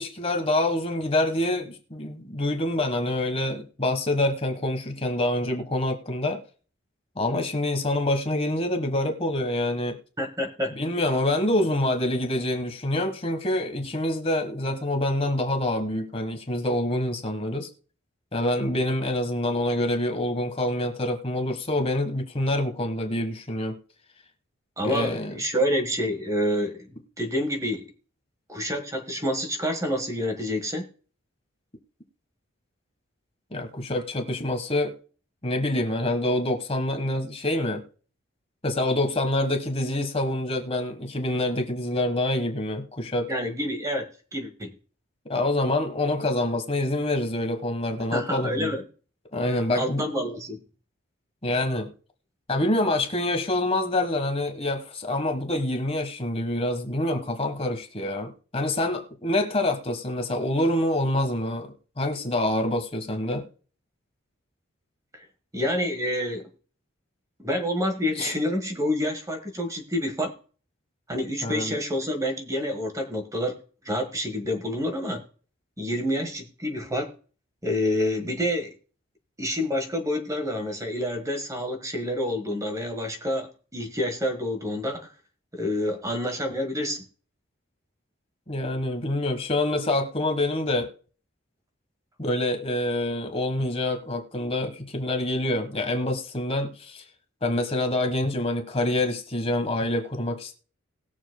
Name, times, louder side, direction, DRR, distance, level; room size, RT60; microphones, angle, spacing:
voice 1, 0.0-6.4 7.2-10.0 10.7-17.7 18.3-23.8 24.8-25.3 33.5-34.9 35.4-37.8 38.6-43.3 45.2-48.7 49.3-50.0 51.4-51.9 52.5-63.4 68.2-68.3 71.4-71.7 88.5-90.9 92.2-97.0 97.4-100.5, left 1 dB, 30° left, 1.3 m, -26 dB
voice 2, 10.2-10.7 24.8-26.9 27.2-27.9 28.5-30.8 43.3-44.7 48.1-48.8 49.5-50.6 65.5-66.4 67.4-70.3 71.1-73.6 73.8-75.2 75.8-77.1 77.6-78.7 79.4-85.1 85.5-87.0, left 1 dB, 15° right, 1.4 m, -28 dB
20.0 x 7.1 x 2.2 m
head